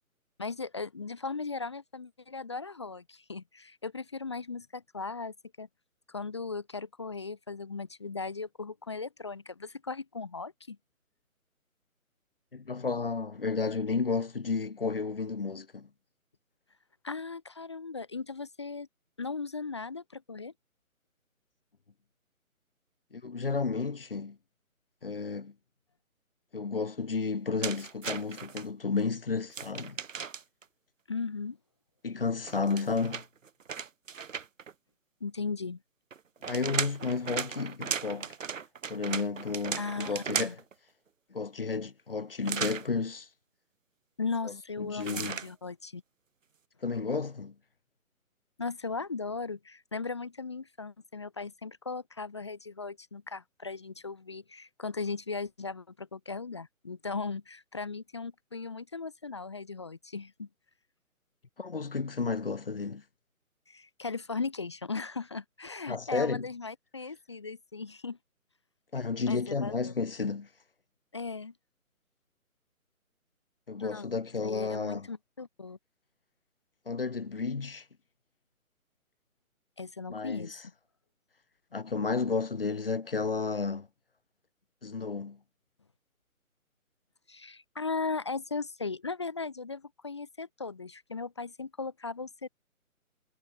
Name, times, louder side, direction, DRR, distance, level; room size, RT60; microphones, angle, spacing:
voice 1, 0.4-5.7 6.1-10.8 17.0-18.9 19.2-20.5 31.1-31.6 35.2-35.8 39.8-40.6 44.2-46.0 48.6-60.5 63.7-68.2 69.3-69.9 71.1-71.5 73.8-74.1 74.4-75.8 79.8-80.5 87.3-92.5, left 4 dB, 20° left, 0.8 m, -37 dB
voice 2, 12.5-15.9 23.1-24.4 25.0-25.5 26.5-30.0 32.0-33.2 36.5-38.3 38.9-40.6 41.3-43.3 44.5-45.3 46.8-47.5 61.6-63.0 65.9-66.5 68.9-70.5 73.7-75.1 76.9-77.9 80.1-80.6 81.7-83.9 84.8-85.4, left 4 dB, 40° left, 0.5 m, -32 dB
sound 1, 27.6-28.6 29.5-30.6 32.4-34.7 36.1-40.7 42.4-42.9 45.0-45.5, right 6 dB, 60° right, 1.4 m, -36 dB
hypercardioid pair, 165°, 43 cm